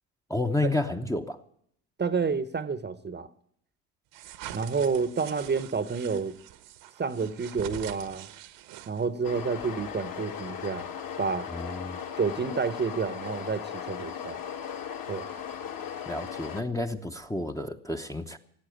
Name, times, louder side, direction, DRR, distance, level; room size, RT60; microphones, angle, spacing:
voice 1, 0.3-1.4 11.5-12.0 16.1-18.4, left 2 dB, 5° left, 0.9 m, -30 dB
voice 2, 2.0-3.3 4.5-6.4 7.0-8.3 8.9-10.9 11.2-11.5 12.2-14.4 15.1-15.3, right 5 dB, 20° right, 1.0 m, -29 dB
sound 1, 4.1-9.2, right 12 dB, 60° right, 1.3 m, -44 dB
sound 2, 9.2-16.6, left 8 dB, 45° left, 1.7 m, -37 dB
17.0 x 8.3 x 9.3 m
hypercardioid pair, 70°, 46 cm